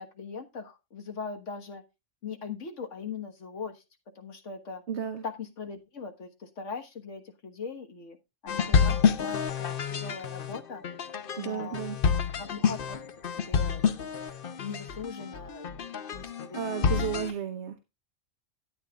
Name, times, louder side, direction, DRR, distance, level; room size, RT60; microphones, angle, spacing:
voice 1, 0.0-1.8 2.2-3.8 4.2-4.8 5.2-8.2 8.4-10.8 11.4-11.8 12.4-13.0 13.3-13.8 14.6-15.8 16.1-16.9, left 5 dB, 75° left, 6 dB, 1.8 m, -40 dB
voice 2, 4.9-5.2 11.4-12.0 16.5-17.7, right 8 dB, 65° right, 6 dB, 1.3 m, -33 dB
sound 1, 8.5-17.3, left 6 dB, 50° left, 0.9 m, -28 dB
13.0 x 8.9 x 2.4 m, 0.24 s
omnidirectional pair, 1.3 m